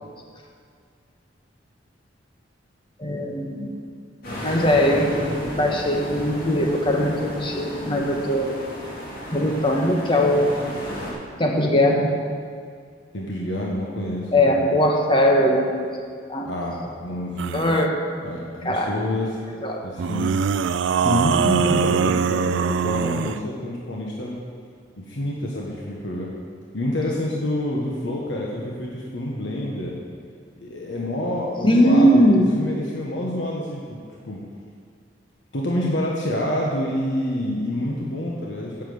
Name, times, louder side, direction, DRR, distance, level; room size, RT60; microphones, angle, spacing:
voice 1, 3.0-3.7 4.4-8.5 9.3-10.5 11.4-12.1 14.3-15.8 16.3-16.5 17.5-17.9 18.6-18.9 19.6-19.8 31.6-32.6, equal, 25° left, 0 dB, 1.3 m, -20 dB
sound 1, 4.2-11.1, equal, 55° left, 2.8 m, -34 dB
voice 2, 13.1-14.6 16.4-17.6 18.2-19.3 19.8-20.3 20.7-24.3 25.0-26.3 26.7-29.9 30.6-34.0 34.2-34.4 35.5-38.8, left 1 dB, 80° left, -3 dB, 1.4 m, -27 dB
sound 2, 17.4-17.9 20.0-23.4, right 6 dB, 75° right, 0.3 m, -22 dB
8.6 x 7.5 x 7.9 m, 2.2 s
head